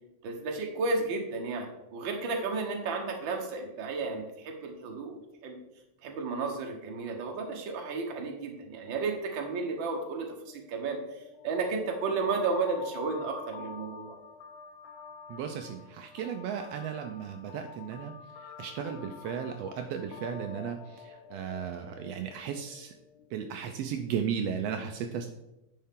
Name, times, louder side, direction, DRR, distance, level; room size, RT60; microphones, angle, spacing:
voice 1, 0.2-5.6 6.0-11.0 11.4-14.1, right 4 dB, 55° right, 2 dB, 1.5 m, -33 dB
sound 1, 7.8-8.8 9.2-9.3 9.6-24.0, left 6 dB, 80° left, 2.2 m, -49 dB
voice 2, 15.3-18.1 18.6-20.8 21.3-22.9 23.3-25.3, right 7 dB, 85° right, 5 dB, 1.4 m, -35 dB
9.7 x 5.6 x 3.7 m, 0.91 s
omnidirectional pair, 3.5 m